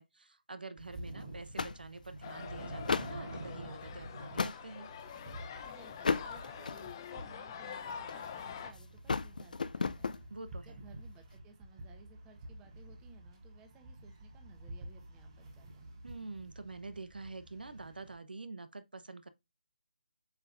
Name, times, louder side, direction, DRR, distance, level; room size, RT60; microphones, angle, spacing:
voice 1, 0.0-4.9 10.3-10.8 16.0-19.3, right 3 dB, 80° right, 0.9 m, -46 dB
sound 1, 0.8-18.2, right 1 dB, 35° right, 3.5 m, -49 dB
sound 2, 0.9-1.1 1.6-2.3 2.8-3.2 3.9-4.6 5.2-5.5 6.0-7.0 7.7-8.4 8.7-10.2, left 4 dB, 60° left, 0.6 m, -35 dB
sound 3, 2.2-8.7, left 7 dB, 25° left, 0.7 m, -45 dB
voice 2, 5.6-10.2 10.6-15.9, right 5 dB, 10° right, 1.2 m, -59 dB
8.1 x 5.7 x 2.6 m
figure-of-eight pair, 155°, 5 cm